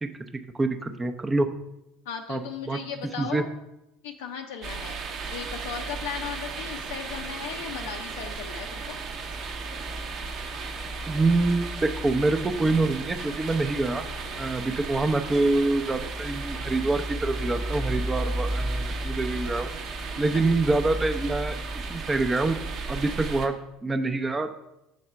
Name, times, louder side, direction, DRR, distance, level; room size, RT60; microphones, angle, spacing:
voice 1, 0.5-1.5 2.3-2.8 3.2-3.4 11.1-14.0 14.4-19.7 20.2-21.6 21.9-22.6 22.9-23.5 23.8-24.5, right 2 dB, 20° right, 7 dB, 0.6 m, -25 dB
voice 2, 2.1-3.5 4.0-5.0 5.3-9.0 14.6-14.8 20.3-20.4, left 7 dB, 65° left, 4 dB, 0.5 m, -37 dB
sound 1, 4.6-23.5, right 3 dB, 45° right, 0.9 m, -33 dB
6.5 x 4.2 x 5.6 m, 0.91 s
figure-of-eight pair, 65°, 0 cm